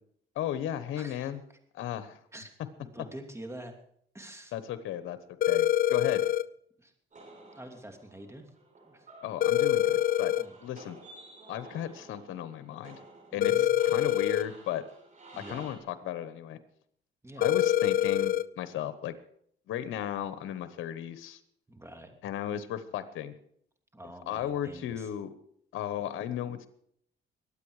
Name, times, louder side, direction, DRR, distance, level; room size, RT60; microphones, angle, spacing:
voice 1, 0.3-1.4 1.7-2.2 4.5-5.2 5.5-6.2 9.2-10.3 10.6-11.0 11.5-13.0 13.3-14.8 15.4-16.6 17.4-19.1 19.7-21.4 22.2-23.3 24.3-25.3 25.7-26.7, left 11 dB, 85° left, 13 dB, 1.1 m, -35 dB
voice 2, 1.0-1.3 2.3-2.5 2.8-3.7 4.1-4.5 6.8-6.9 7.5-8.5 8.8-9.1 10.3-10.6 13.3-13.7 15.3-15.7 17.2-17.5 21.7-22.2 23.9-25.1, right 1 dB, 15° right, 5 dB, 2.8 m, -46 dB
sound 1, 5.4-6.4 9.4-10.4 13.4-14.4 17.4-18.4, left 11 dB, 45° left, 0.5 m, -25 dB
sound 2, 7.1-15.8, right 2 dB, 40° right, 6.2 m, -52 dB
22.0 x 8.7 x 4.9 m, 0.66 s
cardioid pair, 90°, 20 cm